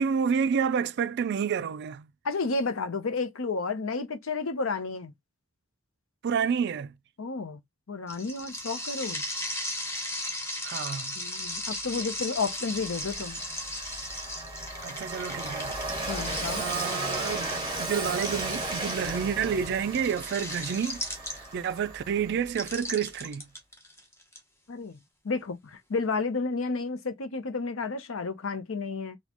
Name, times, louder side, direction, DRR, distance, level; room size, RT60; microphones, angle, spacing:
voice 1, 0.0-2.1 6.2-6.9 10.6-11.2 14.8-15.7 16.5-21.0 21.3-23.4, right 7 dB, 55° right, 0.3 m, -29 dB
voice 2, 2.2-5.1 7.2-7.6 7.9-9.2 11.2-13.4 16.1-16.7 24.7-25.0 25.2-29.2, left 4 dB, 90° left, 0.7 m, -31 dB
sound 1, 8.1-21.7 22.5-24.4, left 1 dB, 15° left, 1.0 m, -36 dB
Train, 11.9-12.0 12.4-22.8, right 2 dB, 25° right, 2.0 m, -36 dB
4.1 x 2.3 x 2.9 m
head